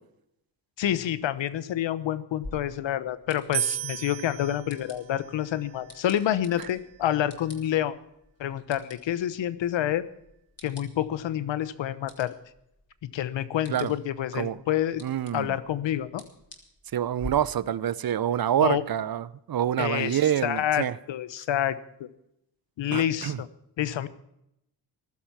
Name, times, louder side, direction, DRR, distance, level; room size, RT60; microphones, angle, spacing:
voice 1, 0.8-7.9 8.4-10.1 10.6-12.3 13.1-15.0 15.3-16.2 18.6-18.8 19.8-22.1 22.8-23.5 23.8-24.1, left 11 dB, 80° left, 15 dB, 1.0 m, -28 dB
sound 1, 2.4-17.3, left 2 dB, 35° left, 4.3 m, -50 dB
sound 2, 3.5-6.8, right 12 dB, 90° right, 0.9 m, -35 dB
voice 2, 15.0-15.5 16.9-20.9 22.9-23.4, right 10 dB, 50° right, 18 dB, 0.7 m, -27 dB
15.5 x 12.0 x 5.8 m, 0.79 s
cardioid pair, 75°, 44 cm